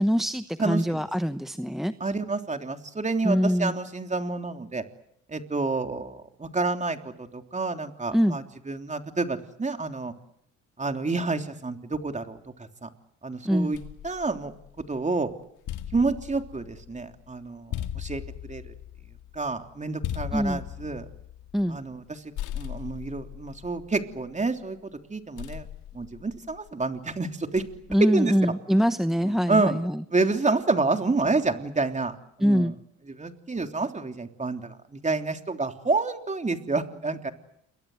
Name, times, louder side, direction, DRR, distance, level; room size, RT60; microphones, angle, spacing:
voice 1, 0.0-1.9 3.2-3.7 8.1-8.4 13.4-13.7 20.3-20.6 21.5-21.8 27.9-30.0 32.4-32.7, equal, ahead, 11 dB, 1.0 m, -24 dB
voice 2, 0.6-1.0 2.0-4.8 5.3-10.1 10.8-12.9 13.2-13.8 14.0-14.5 14.9-15.3 15.9-18.2 18.5-18.7 19.3-21.0 21.7-25.7 25.9-27.6 28.1-28.3 29.2-29.8 30.1-32.7 33.2-37.3, right 3 dB, 25° right, 6 dB, 3.4 m, -29 dB
sound 1, 13.7-15.0 15.4-22.1 22.4-24.6 25.4-26.8 27.6-28.0, left 11 dB, 90° left, 1.9 m, -39 dB
29.0 x 23.0 x 8.1 m, 0.75 s
cardioid pair, 90°, 30 cm